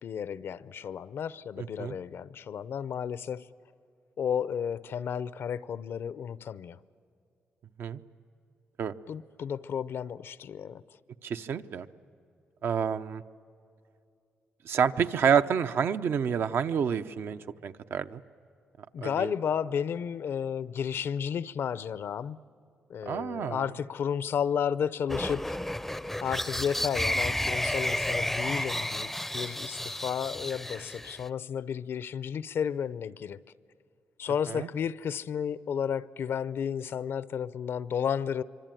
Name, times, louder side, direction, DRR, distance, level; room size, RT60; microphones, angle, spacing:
voice 1, 0.0-3.4 4.2-6.8 9.1-10.8 18.9-22.4 22.9-25.6 26.2-33.4 34.2-38.4, left 8 dB, 65° left, 0.6 m, -32 dB
voice 2, 1.6-2.0 7.8-8.0 8.8-8.9 11.2-11.9 12.6-13.2 14.6-18.2 19.0-19.3 23.1-23.6 34.5-34.7, right 7 dB, 70° right, 0.7 m, -28 dB
sound 1, 25.1-31.3, left 1 dB, 5° left, 0.5 m, -32 dB
25.5 x 24.0 x 9.1 m
cardioid pair, 90°, 4 cm